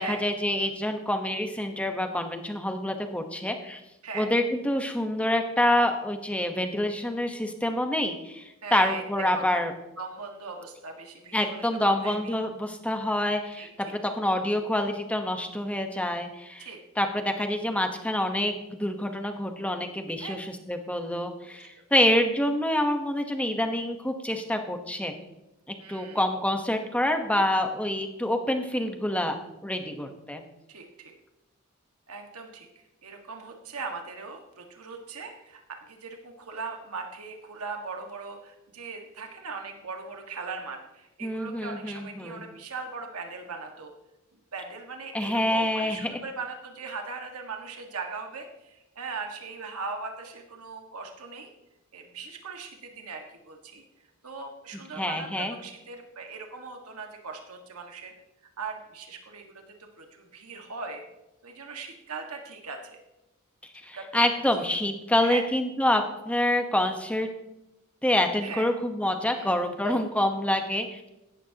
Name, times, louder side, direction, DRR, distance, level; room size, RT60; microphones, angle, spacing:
voice 1, 0.0-3.8 4.1-9.7 11.3-13.7 14.0-16.7 17.0-25.1 25.9-29.4 29.6-30.4 41.2-42.4 45.1-46.2 55.0-55.5 63.8-67.3 68.0-71.0, left 1 dB, 5° left, 5 dB, 1.0 m, -27 dB
voice 2, 8.6-9.6 10.0-12.3 13.5-13.9 16.6-16.8 20.2-20.3 21.6-21.7 21.9-22.0 25.8-26.2 30.7-31.1 32.1-32.7 33.0-43.9 44.5-51.5 51.9-53.8 54.2-58.1 58.6-61.0 61.4-63.0 63.9-64.3 65.2-65.4 68.4-68.7 69.3-69.5 69.8-70.0, right 4 dB, 90° right, 3 dB, 1.7 m, -39 dB
17.0 x 13.5 x 2.9 m, 0.95 s
head